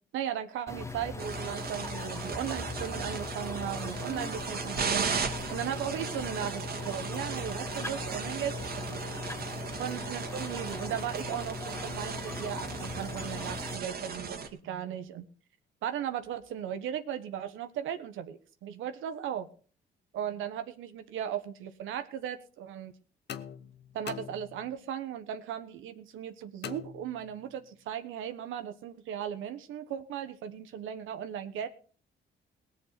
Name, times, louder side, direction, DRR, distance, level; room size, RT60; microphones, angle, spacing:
voice 1, 0.1-9.1 9.8-14.4 14.6-15.2 15.8-19.5 20.1-22.9 23.9-31.7, right 9 dB, 85° right, 8 dB, 1.2 m, -37 dB
sound 1, 0.7-13.8, left 3 dB, 15° left, 1.3 m, -39 dB
sound 2, 1.2-14.5, right 5 dB, 50° right, 2.1 m, -37 dB
sound 3, 23.3-24.9 26.6-27.6, left 8 dB, 60° left, 1.0 m, -43 dB
18.5 x 7.2 x 5.9 m, 0.41 s
cardioid pair, 90°, 20 cm